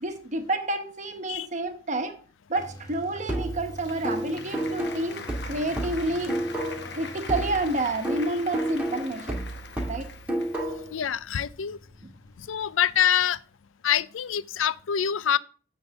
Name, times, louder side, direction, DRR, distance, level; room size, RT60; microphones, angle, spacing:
voice 1, 0.0-2.2 2.5-6.3 6.9-9.4 9.9-10.1 12.0-12.1, right 2 dB, 40° right, 1.2 m, -29 dB
sound 1, 2.5-13.0, equal, 20° left, 1.4 m, -48 dB
sound 2, 3.3-7.0 7.3-11.0, right 1 dB, 5° right, 2.0 m, -31 dB
Applause, 3.4-11.0, left 5 dB, 60° left, 1.0 m, -43 dB
voice 2, 10.9-11.8 12.4-13.4 13.8-15.4, left 9 dB, 90° left, 0.4 m, -25 dB
9.0 x 4.0 x 6.9 m
head